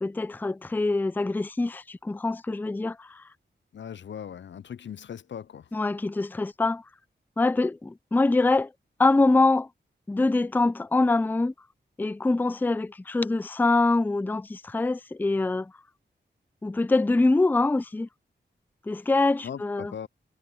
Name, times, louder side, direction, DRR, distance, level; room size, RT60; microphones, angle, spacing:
voice 1, 0.0-3.2 5.7-6.8 7.4-8.7 9.0-9.7 10.1-11.5 12.0-15.7 16.6-18.1 18.9-19.9, left 2 dB, 10° left, 0.4 m, -24 dB
voice 2, 3.7-5.7 19.4-20.1, left 8 dB, 75° left, 0.5 m, -39 dB
wide cardioid pair, 120°, 19 cm